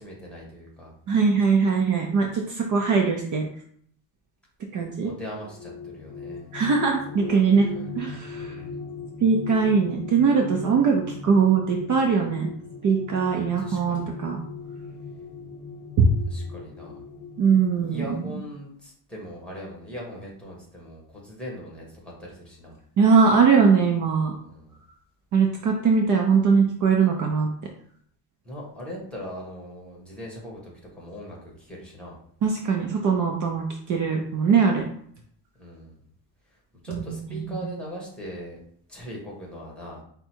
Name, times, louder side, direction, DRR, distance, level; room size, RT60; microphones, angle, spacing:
voice 1, 0.0-0.9 5.0-6.5 7.2-7.9 8.4-8.8 13.3-14.1 16.3-17.0 17.8-22.8 24.4-24.8 28.4-32.2 35.6-36.0 36.5-36.6 36.8-38.6 38.9-40.0, equal, ahead, -3 dB, 1.3 m, -40 dB
voice 2, 1.1-3.4 4.7-5.1 6.5-7.7 8.0-8.6 9.2-12.5 12.8-14.4 16.0-16.1 17.4-18.2 23.0-24.3 25.3-27.5 32.4-34.8 36.9-37.6, right 5 dB, 45° right, 1 dB, 0.6 m, -21 dB
sound 1, 5.3-18.1, left 5 dB, 35° left, 0.7 m, -39 dB
4.8 x 2.2 x 4.4 m, 0.63 s
cardioid pair, 160°, 43 cm